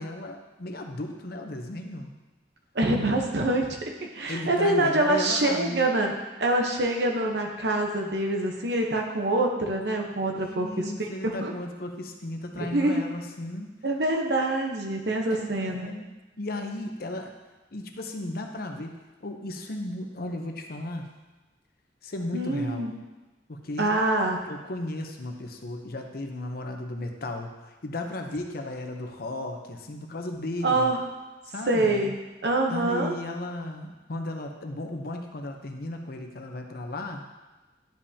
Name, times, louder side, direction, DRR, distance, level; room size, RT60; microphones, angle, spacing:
voice 1, 0.0-2.1 4.3-5.9 10.3-13.7 15.3-16.1 16.4-17.4 17.7-21.1 22.0-22.9 23.5-24.0 24.4-30.9 31.4-32.1 32.7-37.2, left 1 dB, 55° left, 4 dB, 0.8 m, -35 dB
voice 2, 2.7-3.8 4.1-6.1 6.4-11.1 11.4-11.5 12.6-13.0 13.8-15.9 22.3-22.9 23.8-24.4 30.6-31.0 31.7-32.1 32.4-33.1, right 2 dB, 65° right, 2 dB, 0.9 m, -25 dB
10.5 x 5.4 x 2.8 m, 1.2 s
head